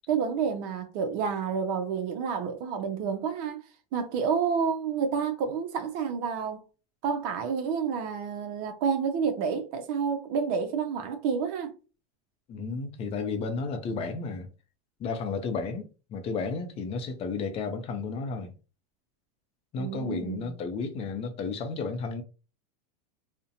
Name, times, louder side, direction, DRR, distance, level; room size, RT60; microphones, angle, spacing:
voice 1, 0.1-6.6 7.0-11.7 19.8-20.5, right 6 dB, 50° right, 0.5 m, -29 dB
voice 2, 12.5-14.5 15.0-18.5 19.7-22.2, left 4 dB, 30° left, 0.5 m, -33 dB
2.4 x 2.1 x 2.7 m
supercardioid pair, 125°, 20 cm